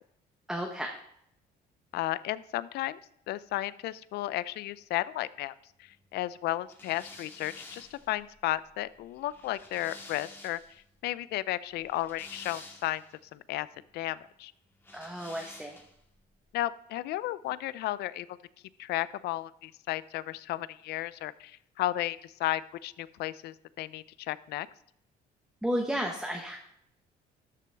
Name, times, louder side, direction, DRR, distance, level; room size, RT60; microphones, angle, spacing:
voice 1, 0.5-0.9 14.9-15.8 25.6-26.6, equal, 5° right, 1 dB, 1.1 m, -32 dB
voice 2, 1.9-3.0 3.3-5.5 5.8-13.0 13.3-13.7 13.9-14.5 16.5-18.3 18.8-24.7, left 15 dB, 75° left, 17 dB, 0.5 m, -34 dB
sound 1, 6.7-10.8 11.7-13.1 14.8-16.1, left 2 dB, 15° left, 1.8 m, -50 dB
13.0 x 6.1 x 3.5 m, 0.72 s
cardioid pair, 110°, 17 cm